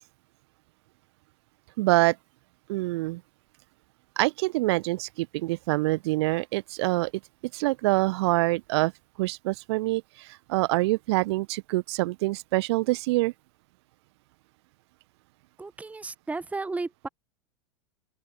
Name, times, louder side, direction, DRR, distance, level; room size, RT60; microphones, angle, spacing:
voice 1, 1.8-2.2 2.7-3.2 4.2-7.1 7.5-8.9 9.2-13.3, right 21 dB, 50° right, 1.0 m, -25 dB
voice 2, 15.6-17.1, right 3 dB, 10° right, 1.1 m, -34 dB
open air
figure-of-eight pair, 85°, 18 cm